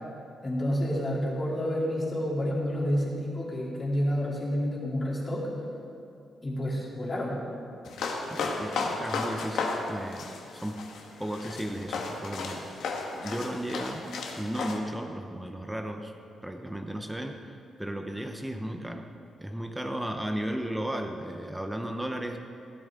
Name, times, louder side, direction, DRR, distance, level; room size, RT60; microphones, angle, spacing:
voice 1, 0.4-5.5 6.4-7.4, equal, 30° left, -4 dB, 2.9 m, -29 dB
sound 1, 7.9-14.8, left 4 dB, 85° left, 1.3 m, -34 dB
voice 2, 8.3-10.9 11.2-12.7 13.2-14.1 14.4-16.1 16.4-19.1 19.4-22.4, right 1 dB, 5° right, 5 dB, 0.7 m, -35 dB
15.5 x 12.0 x 3.7 m, 2.5 s
cardioid pair, 115°, 0 cm